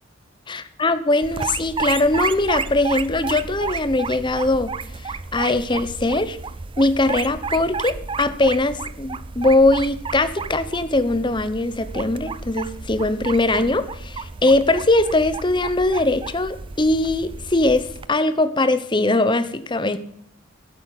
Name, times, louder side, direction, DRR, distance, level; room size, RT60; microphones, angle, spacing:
voice 1, 0.5-4.7 5.0-6.4 6.8-20.0, left 2 dB, 25° left, 12 dB, 0.9 m, -21 dB
sound 1, 1.2-18.1, right 4 dB, 25° right, 0.4 m, -32 dB
12.0 x 8.6 x 7.5 m, 0.67 s
head